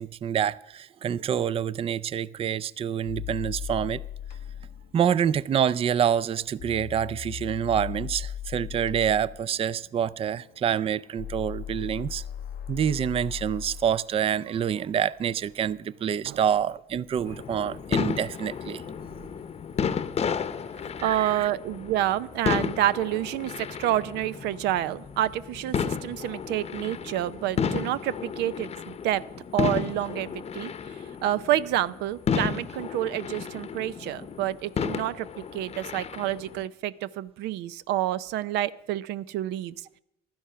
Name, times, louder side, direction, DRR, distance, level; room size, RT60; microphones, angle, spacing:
voice 1, 0.0-4.0 4.9-12.2 12.7-18.8 21.0-21.5, right 8 dB, 35° right, 0.4 m, -27 dB
knights riders, 3.1-14.3, left 10 dB, 75° left, 0.6 m, -38 dB
sound 1, 17.3-36.7, left 7 dB, 40° left, 0.8 m, -32 dB
voice 2, 21.0-29.2 29.5-39.9, right 13 dB, 85° right, 0.6 m, -28 dB
15.0 x 12.0 x 5.6 m
cardioid pair, 110°, 17 cm